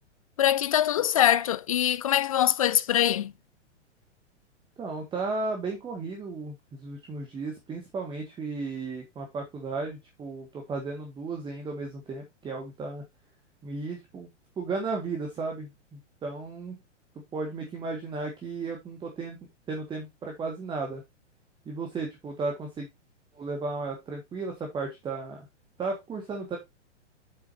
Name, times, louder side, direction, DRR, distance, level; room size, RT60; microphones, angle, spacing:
voice 1, 0.4-3.3, left 11 dB, 30° left, 0.4 m, -23 dB
voice 2, 4.8-13.0 13.6-14.3 14.6-16.8 17.3-19.4 19.7-21.0 21.6-22.9 23.3-25.4 25.8-26.6, right 3 dB, 15° right, 1.7 m, -34 dB
8.1 x 7.9 x 2.7 m
figure-of-eight pair, 110°, 36 cm